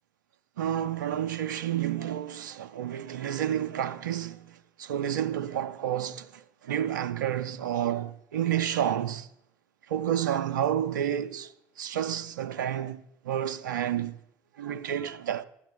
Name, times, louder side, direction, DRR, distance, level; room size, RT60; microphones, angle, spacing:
voice 1, 0.6-9.3 9.9-14.1 14.6-15.5, right 10 dB, 75° right, 0.4 m, -30 dB
13.0 x 7.3 x 7.3 m
figure-of-eight pair, 55°, 10 cm